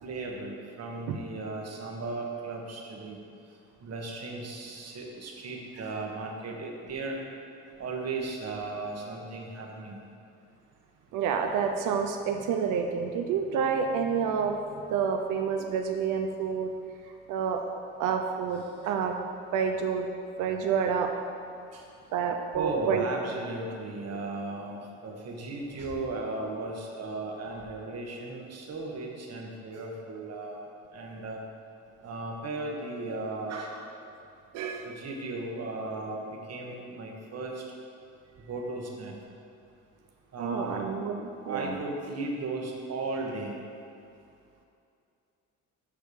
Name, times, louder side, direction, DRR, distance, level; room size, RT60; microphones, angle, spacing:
voice 1, 0.0-3.2 3.8-7.2 7.8-10.0 18.8-18.9 21.7-21.9 22.5-31.4 32.0-33.9 34.8-37.6 38.4-39.1 40.3-40.8 41.4-43.6, right 2 dB, 55° right, 0 dB, 1.4 m, -36 dB
voice 2, 11.1-14.6 14.9-16.7 17.3-17.6 18.0-19.2 19.5-20.1 20.4-21.1 22.1-23.1 34.5-34.9 40.4-41.8, right 6 dB, 90° right, 4 dB, 0.6 m, -28 dB
7.3 x 4.5 x 6.8 m, 2.5 s
cardioid pair, 90°, 30 cm